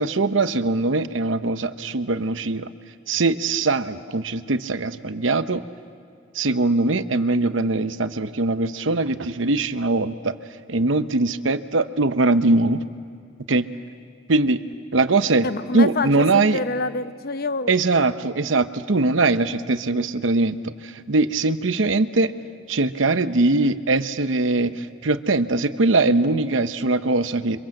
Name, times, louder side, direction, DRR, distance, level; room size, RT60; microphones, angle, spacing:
voice 1, 0.0-2.7 3.1-5.6 6.3-10.3 10.7-12.8 13.5-13.7 14.3-14.6 14.9-15.5 15.7-16.6 17.7-22.3 22.7-27.6, right 3 dB, 75° right, 11 dB, 0.9 m, -21 dB
voice 2, 15.4-17.8, left 3 dB, 50° left, 12 dB, 0.8 m, -27 dB
29.5 x 25.0 x 7.7 m, 2.3 s
head